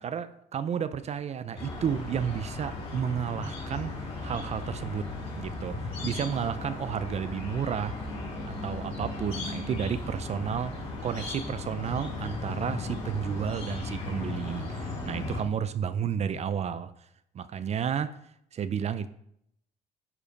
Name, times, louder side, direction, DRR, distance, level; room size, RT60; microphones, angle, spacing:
voice 1, 0.0-3.9 4.2-5.1 5.4-5.8 6.0-7.9 8.4-10.7 11.0-16.9 17.3-18.2 18.5-19.1, right 8 dB, 40° right, 13 dB, 0.5 m, -32 dB
sound 1, 1.6-15.4, left 2 dB, 35° left, 3.9 m, -36 dB
9.9 x 4.9 x 5.2 m, 0.74 s
cardioid pair, 110°, 17 cm